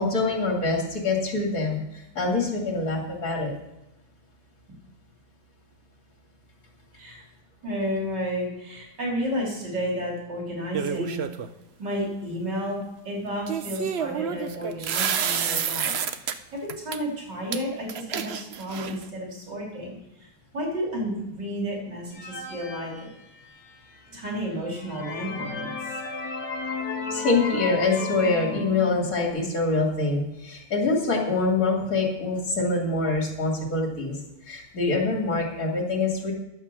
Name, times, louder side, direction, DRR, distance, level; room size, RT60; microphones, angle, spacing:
voice 1, 0.0-3.5 27.1-34.2 34.4-36.3, left 3 dB, 55° left, -1 dB, 3.1 m, -25 dB
voice 2, 6.9-7.3 7.6-11.2 11.8-15.9 16.5-23.1 24.1-25.9, equal, 90° right, -2 dB, 3.7 m, -32 dB
sound 1, 10.7-11.5 13.5-16.3 16.7-17.0 17.5-17.6 17.9-19.1, right 8 dB, 55° right, 0.7 m, -29 dB
sound 2, 22.1-23.8 24.3-24.4 24.8-29.3, left 3 dB, 75° left, 2.2 m, -34 dB
11.5 x 7.2 x 6.9 m, 0.94 s
omnidirectional pair, 1.8 m